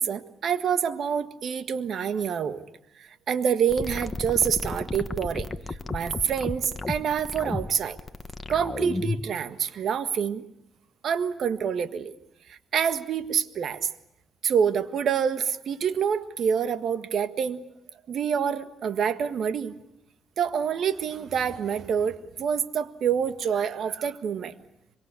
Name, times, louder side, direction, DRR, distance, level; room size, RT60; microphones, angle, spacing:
voice 1, 0.0-2.6 3.0-8.0 8.5-10.4 11.0-12.1 12.5-13.9 14.4-17.6 18.1-19.7 20.4-24.5, right 7 dB, 65° right, 11 dB, 1.6 m, -27 dB
sound 1, 3.7-9.3, left 3 dB, 20° left, 1.6 m, -32 dB
25.0 x 23.5 x 8.4 m, 0.85 s
cardioid pair, 90°, 0 cm